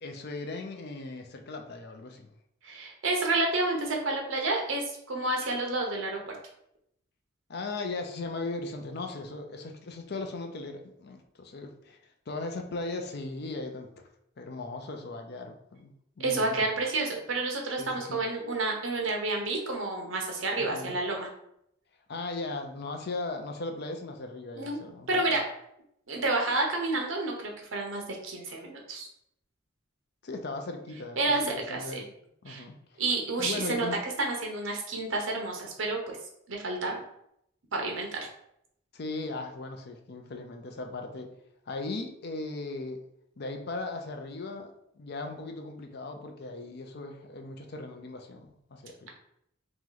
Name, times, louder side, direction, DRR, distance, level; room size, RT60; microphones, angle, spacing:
voice 1, 0.0-2.3 7.5-14.0 14.4-15.9 16.2-16.7 17.8-18.2 20.6-21.0 22.1-25.3 30.2-32.0 32.4-33.0 33.4-34.0 38.9-41.3 41.7-43.0 43.4-49.1, left 3 dB, 50° left, 4 dB, 0.5 m, -38 dB
voice 2, 2.6-6.4 16.2-21.3 24.5-24.8 25.1-25.4 26.1-29.1 31.2-32.0 32.5-32.6 33.0-33.9 34.2-36.2 36.5-37.0 37.7-38.2, right 2 dB, 70° right, 1 dB, 0.9 m, -30 dB
3.0 x 3.0 x 3.8 m, 0.74 s
head